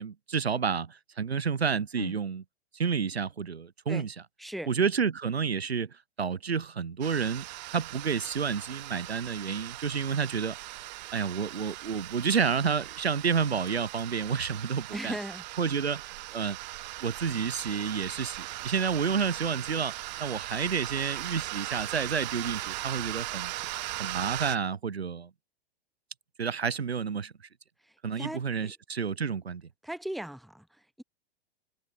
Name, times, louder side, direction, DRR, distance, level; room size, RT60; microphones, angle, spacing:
voice 1, 0.0-2.4 2.7-4.1 4.7-5.9 6.2-7.5 7.7-10.6 11.1-15.2 15.6-16.6 17.0-23.5 24.0-25.3 26.4-27.3 28.0-29.6, right 6 dB, 90° right, 0.6 m, -30 dB
voice 2, 4.4-4.7 14.9-15.5 27.8-28.7 29.8-31.0, right 1 dB, ahead, 0.6 m, -38 dB
sound 1, 7.0-24.6, right 19 dB, 45° right, 0.9 m, -39 dB
figure-of-eight pair, 100°, 31 cm